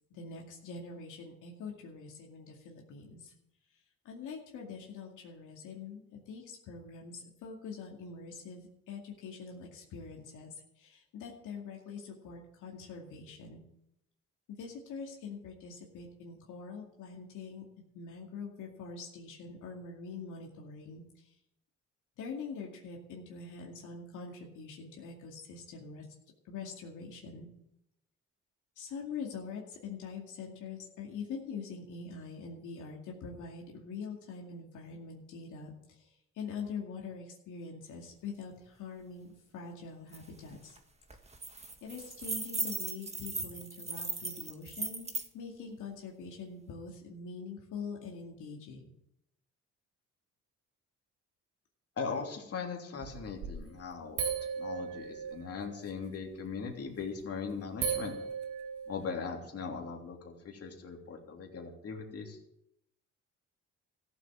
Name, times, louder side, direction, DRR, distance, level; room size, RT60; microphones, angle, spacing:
voice 1, 0.1-3.3 4.0-13.6 14.5-17.6 17.9-21.3 22.2-26.0 26.4-27.5 28.8-40.8 41.8-48.9, left 5 dB, 80° left, -1 dB, 2.4 m, -44 dB
sound 1, 40.1-40.2 40.5-40.8 41.1-45.3, right 3 dB, 20° right, 1.7 m, -38 dB
voice 2, 52.0-54.2 54.6-58.1 58.9-62.4, left 5 dB, 50° left, 1 dB, 3.1 m, -39 dB
sound 2, 53.0-53.7 54.2-55.9 57.0-57.2 57.8-59.1, right 6 dB, 85° right, 2.0 m, -36 dB
14.5 x 7.6 x 7.5 m, 0.80 s
cardioid pair, 90°, 30 cm